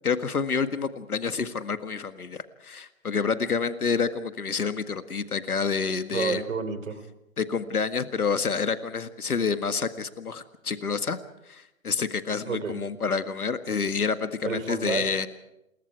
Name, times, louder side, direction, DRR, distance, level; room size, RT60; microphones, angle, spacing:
voice 1, 0.0-6.4 7.4-11.2 11.5-15.3, left 5 dB, 90° left, 10 dB, 1.9 m, -28 dB
voice 2, 6.1-7.0 12.5-12.8 14.4-15.3, right 4 dB, 60° right, 11 dB, 3.4 m, -30 dB
27.5 x 22.5 x 4.7 m, 0.87 s
hypercardioid pair, 155°, 43 cm